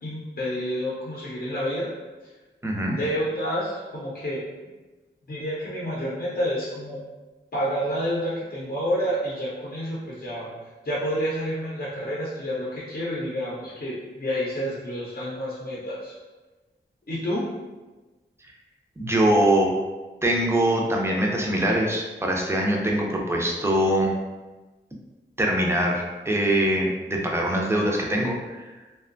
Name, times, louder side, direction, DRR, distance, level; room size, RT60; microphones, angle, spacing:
voice 1, 0.0-1.9 3.0-4.4 5.3-7.0 7.5-10.5 10.8-16.1 17.1-17.5, equal, 50° left, -7 dB, 0.6 m, -29 dB
voice 2, 2.6-3.0 18.4-18.5 19.0-19.7 20.2-24.2 25.4-28.7, right 1 dB, 15° right, -1 dB, 0.4 m, -23 dB
2.6 x 2.2 x 2.5 m, 1.2 s
wide cardioid pair, 85°, 19 cm